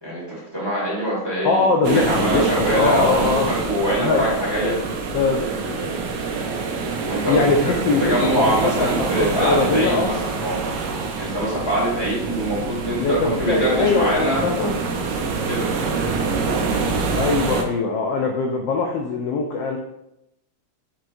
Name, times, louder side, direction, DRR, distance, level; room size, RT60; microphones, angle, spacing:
voice 1, 0.0-4.8 7.0-7.7 8.0-10.6 11.2-14.4 15.4-15.7, right 1 dB, 15° right, -8 dB, 1.4 m, -24 dB
voice 2, 1.4-3.5 4.0-4.3 4.6-4.7 5.1-6.2 7.3-10.1 13.0-14.8 17.2-19.8, left 4 dB, 75° left, 2 dB, 1.0 m, -22 dB
sound 1, 1.8-17.6, right 4 dB, 75° right, 1.1 m, -26 dB
4.6 x 4.4 x 2.6 m, 0.84 s
omnidirectional pair, 2.4 m